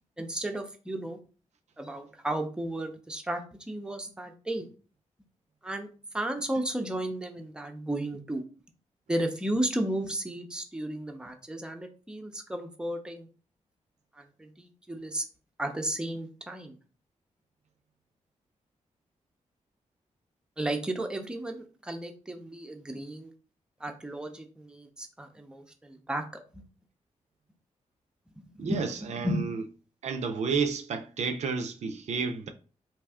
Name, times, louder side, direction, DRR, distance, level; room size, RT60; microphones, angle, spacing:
voice 1, 0.2-1.2 1.8-3.4 3.7-4.7 5.6-5.9 6.1-8.4 9.1-13.3 14.1-15.2 15.6-16.8 20.6-23.3 23.8-26.2 26.5-26.6 28.4-28.8 29.2-29.4, right 1 dB, 5° right, 0.5 m, -33 dB
voice 2, 28.6-29.6 30.0-32.5, right 5 dB, 65° right, 0.4 m, -31 dB
2.7 x 2.3 x 3.4 m
cardioid pair, 75°, 13 cm